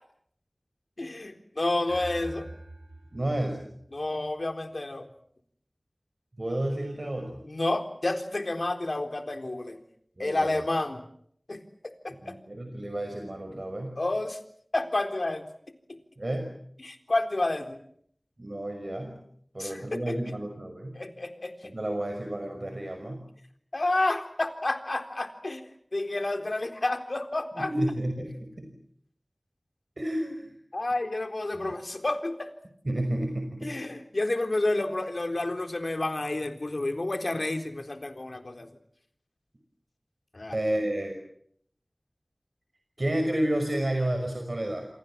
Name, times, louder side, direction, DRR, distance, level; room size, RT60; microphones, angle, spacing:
voice 1, 1.0-2.5 3.9-5.0 7.5-9.8 10.2-11.0 11.5-11.6 12.0-12.3 14.0-14.4 14.7-15.4 16.8-17.8 19.6-20.2 20.9-21.7 23.7-25.6 25.9-27.7 30.7-32.5 33.6-38.7 40.3-40.6, left 2 dB, 65° left, 7 dB, 3.9 m, -30 dB
sound 1, 1.9-4.5, right 2 dB, 80° right, 7.0 m, -45 dB
voice 2, 3.1-3.6 6.4-7.4 10.2-10.5 12.2-14.0 16.2-16.5 18.4-19.2 19.5-21.0 21.6-23.2 27.6-28.7 30.0-30.6 31.5-31.7 32.8-33.7 40.5-41.1 43.0-44.9, right 1 dB, 50° right, 5 dB, 5.7 m, -31 dB
28.5 x 24.0 x 7.5 m, 0.67 s
wide cardioid pair, 50°, 0 cm